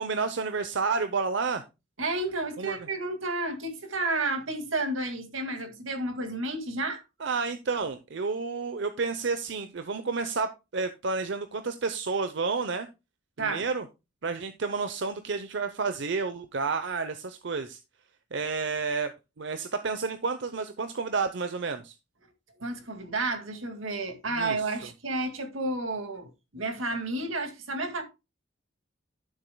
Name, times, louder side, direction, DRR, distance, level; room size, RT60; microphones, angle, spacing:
voice 1, 0.0-1.6 2.6-2.8 7.2-12.9 13.4-13.9 14.2-17.8 18.3-21.9 24.3-24.6, right 4 dB, 60° right, 0.7 m, -30 dB
voice 2, 2.0-7.0 13.4-13.7 22.6-28.0, right 2 dB, 85° right, 2.1 m, -31 dB
12.5 x 7.4 x 2.2 m
head